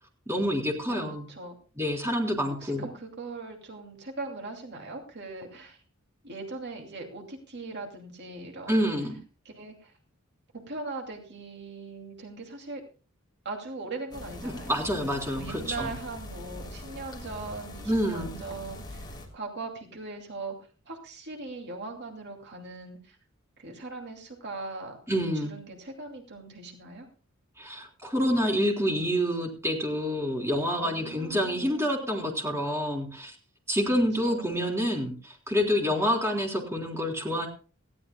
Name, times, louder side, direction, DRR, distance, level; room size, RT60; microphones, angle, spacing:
voice 1, 0.3-1.3 1.8-2.9 8.7-9.2 14.4-15.9 17.9-18.3 25.1-25.5 27.6-33.4 33.7-37.5, equal, 15° right, 0 dB, 3.5 m, -28 dB
voice 2, 0.8-1.6 2.6-5.8 6.2-8.9 9.4-9.9 10.5-12.8 13.4-14.7 15.3-20.5 20.9-23.2 23.6-25.0 25.3-27.1 30.7-31.9 34.2-34.9, right 3 dB, 55° right, 2 dB, 2.6 m, -40 dB
sound 1, 14.1-19.3, left 1 dB, 20° left, 3.2 m, -42 dB
19.0 x 16.0 x 2.2 m, 0.37 s
head